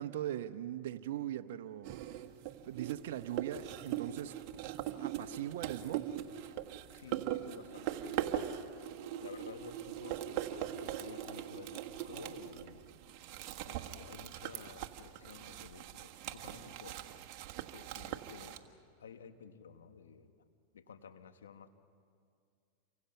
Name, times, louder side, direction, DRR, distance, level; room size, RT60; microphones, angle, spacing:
voice 1, 0.0-2.0 2.6-4.4 4.8-6.2, right 12 dB, 70° right, 0.9 m, -40 dB
sound 1, 1.8-18.6, right 11 dB, 55° right, 1.5 m, -41 dB
voice 2, 6.9-8.5 9.2-12.9 13.6-17.0 17.7-18.6 19.0-20.3 20.7-21.7, left 6 dB, 90° left, 1.6 m, -53 dB
29.0 x 24.5 x 5.8 m
hypercardioid pair, 105°, 0 cm